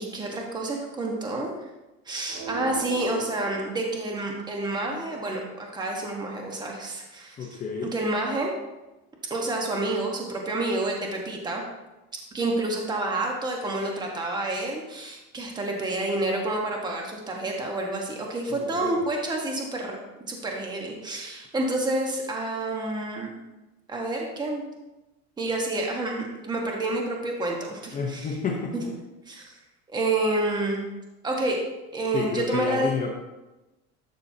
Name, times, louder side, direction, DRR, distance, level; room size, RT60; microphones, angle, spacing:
voice 1, 0.0-1.6 2.1-8.5 9.3-11.6 12.3-20.0 20.3-23.4 23.9-24.7 25.4-28.4 28.7-28.9 29.3-29.6 29.9-30.8 31.2-31.6 31.9-33.0, right 2 dB, 15° right, 0 dB, 1.2 m, -29 dB
sound 1, 2.3-4.4, right 1 dB, 55° right, 2.0 m, -38 dB
voice 2, 7.4-7.9 18.5-19.0 27.9-29.0 32.1-33.2, left 5 dB, 25° left, 0 dB, 0.8 m, -30 dB
11.5 x 6.5 x 2.8 m, 1.0 s
cardioid pair, 155°, 30 cm